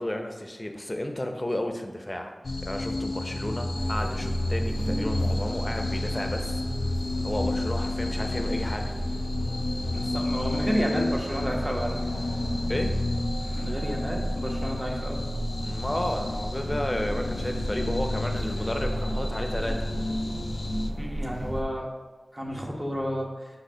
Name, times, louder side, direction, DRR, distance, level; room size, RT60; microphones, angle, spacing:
voice 1, 0.0-2.4 2.6-6.6 7.2-8.9 12.7-12.9 15.6-19.9, left 1 dB, 30° left, 4 dB, 0.7 m, -32 dB
sound 1, 2.4-20.9, left 2 dB, 80° left, 0.4 m, -31 dB
sound 2, 3.7-21.6, right 1 dB, ahead, 1.3 m, -33 dB
voice 2, 9.9-12.0 13.6-15.2 21.0-21.9 22.3-23.3, equal, 15° right, -1 dB, 1.0 m, -31 dB
6.4 x 2.7 x 5.5 m, 1.3 s
wide cardioid pair, 60°, 0 cm